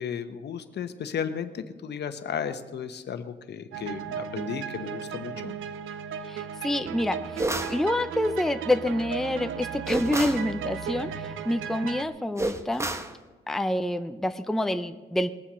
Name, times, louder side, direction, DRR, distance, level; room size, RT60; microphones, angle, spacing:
voice 1, 0.0-5.5, left 7 dB, 60° left, 10 dB, 1.2 m, -34 dB
sound 1, 3.7-12.0, right 8 dB, 80° right, 0.8 m, -35 dB
voice 2, 6.3-12.9 13.5-15.3, left 1 dB, ahead, 9 dB, 0.7 m, -27 dB
sound 2, 7.4-7.8 9.9-10.5 12.4-13.1, right 2 dB, 15° right, 1.2 m, -29 dB
20.5 x 7.2 x 6.3 m, 1.3 s
cardioid pair, 90°, 20 cm